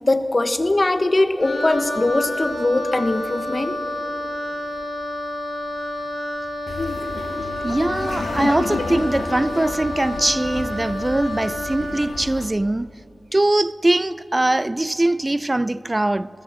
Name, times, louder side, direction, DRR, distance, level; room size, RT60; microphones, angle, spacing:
voice 1, 0.0-3.8, left 2 dB, 40° left, 1.3 m, -21 dB
Wind instrument woodwind instrument, 1.4-12.1, left 1 dB, 65° left, 3.8 m, -29 dB
Laughter, 6.7-12.5, left 3 dB, 85° left, 1.9 m, -31 dB
voice 2, 7.6-12.9 13.3-16.3, right 1 dB, 25° right, 0.4 m, -21 dB
27.5 x 18.5 x 7.4 m
wide cardioid pair, 55°, 0 cm